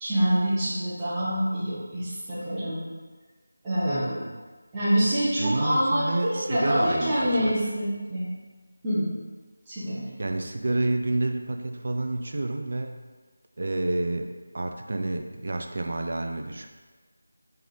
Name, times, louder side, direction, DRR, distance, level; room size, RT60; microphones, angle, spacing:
voice 1, 0.0-2.9 3.6-4.2 4.7-8.3 8.8-9.1 9.7-10.0, equal, 10° right, -13 dB, 0.8 m, -26 dB
voice 2, 5.4-7.5 10.2-13.0 13.6-16.7, right 2 dB, 50° right, 5 dB, 0.4 m, -29 dB
3.7 x 3.3 x 3.5 m, 1.4 s
figure-of-eight pair, 175°, 0 cm